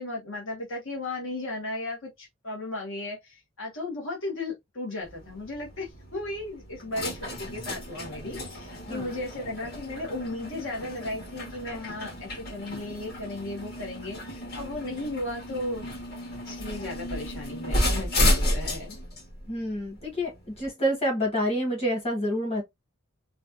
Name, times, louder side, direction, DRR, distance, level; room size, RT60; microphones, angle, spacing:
voice 1, 0.0-15.9 16.4-19.0, left 2 dB, 70° left, 1.2 m, -35 dB
sound 1, 5.0-20.7, left 1 dB, 50° left, 1.6 m, -32 dB
voice 2, 19.5-20.3 20.6-22.6, equal, 30° left, 1.3 m, -27 dB
3.2 x 2.2 x 2.6 m
head